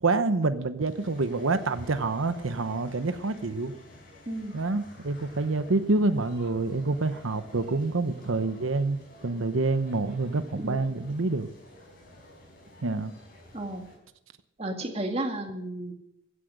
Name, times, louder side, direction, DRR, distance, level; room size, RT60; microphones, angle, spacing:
voice 1, 0.0-3.7 4.5-11.5 12.8-13.1, right 3 dB, 90° right, 11 dB, 0.9 m, -27 dB
sound 1, 0.9-14.0, left 1 dB, 50° left, 5.4 m, -51 dB
voice 2, 4.3-4.6 10.6-10.8 13.5-13.8 14.6-15.9, right 1 dB, 30° right, 3 dB, 2.2 m, -33 dB
16.0 x 10.0 x 6.5 m, 0.82 s
head